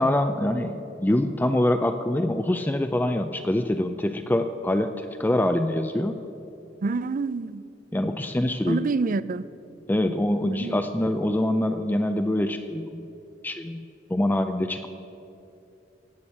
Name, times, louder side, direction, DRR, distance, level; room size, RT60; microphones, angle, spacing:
voice 1, 0.0-6.2 7.9-8.8 9.9-13.0 13.4-13.8 14.1-14.8, left 1 dB, 10° left, 7 dB, 0.5 m, -24 dB
voice 2, 6.8-7.6 8.7-9.5 10.5-10.8, right 4 dB, 45° right, 17 dB, 0.4 m, -27 dB
17.0 x 8.0 x 8.5 m, 2.7 s
head